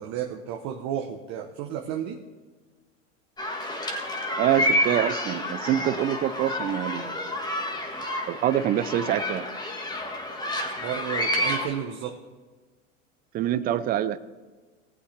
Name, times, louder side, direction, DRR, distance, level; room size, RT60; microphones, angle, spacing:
voice 1, 0.0-2.2 10.7-12.2, right 9 dB, 45° right, 3 dB, 1.0 m, -32 dB
sound 1, 3.4-11.7, left 1 dB, 10° left, 1.5 m, -29 dB
voice 2, 4.4-7.3 8.3-9.5 13.3-14.2, right 11 dB, 25° right, 15 dB, 0.4 m, -25 dB
19.0 x 8.4 x 3.3 m, 1.4 s
hypercardioid pair, 105°, 39 cm